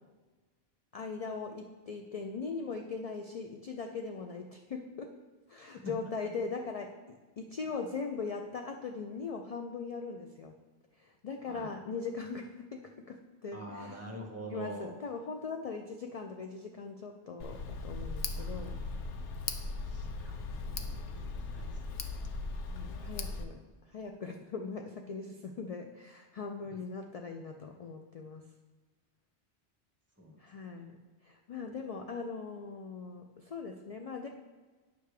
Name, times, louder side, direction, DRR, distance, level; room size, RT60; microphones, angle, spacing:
voice 1, 0.9-5.1 5.5-10.6 10.9-14.0 14.5-18.8 22.7-28.5 30.4-34.3, left 4 dB, 60° left, 3 dB, 0.4 m, -40 dB
voice 2, 5.7-6.1 11.5-11.7 13.5-14.9 18.4-18.8 19.5-22.2 26.6-26.8 30.2-30.4 30.7-30.8, right 1 dB, 15° right, 0 dB, 1.2 m, -46 dB
Tick, 17.4-23.4, left 3 dB, 90° left, 1.0 m, -38 dB
9.5 x 3.4 x 6.5 m, 1.3 s
omnidirectional pair, 1.2 m